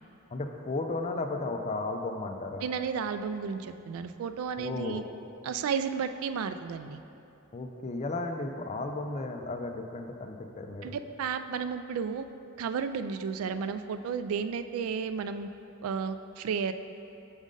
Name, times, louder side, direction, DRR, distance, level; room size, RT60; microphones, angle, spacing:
voice 1, 0.3-2.7 4.6-5.1 7.5-11.0, left 2 dB, 30° left, 4 dB, 0.4 m, -34 dB
voice 2, 2.6-5.0 5.4-7.0 10.8-12.3 12.6-15.5 15.8-16.7, right 6 dB, 85° right, 13 dB, 0.3 m, -33 dB
6.3 x 5.1 x 3.8 m, 2.9 s
head